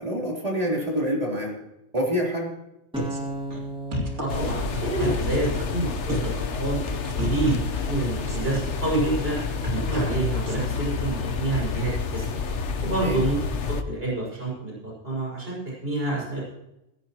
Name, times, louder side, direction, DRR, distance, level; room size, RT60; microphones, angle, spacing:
voice 1, 0.0-1.5 1.9-2.5 13.0-13.2, equal, 35° right, -2 dB, 3.7 m, -26 dB
sound 1, 2.9-6.1, right 3 dB, 5° right, 2.0 m, -36 dB
sound 2, 3.0-3.2 3.5-3.6 3.9-5.8 6.1-6.4 6.6-10.0 10.5-10.8, right 1 dB, 90° right, 2.9 m, -32 dB
voice 2, 4.2-6.8 7.1-12.3 12.8-13.4 13.7-16.4, right 2 dB, 60° right, -4 dB, 6.3 m, -28 dB
sound 3, 4.3-13.8, left 5 dB, 80° left, 1.3 m, -29 dB
16.0 x 15.5 x 3.0 m, 0.90 s
omnidirectional pair, 1.2 m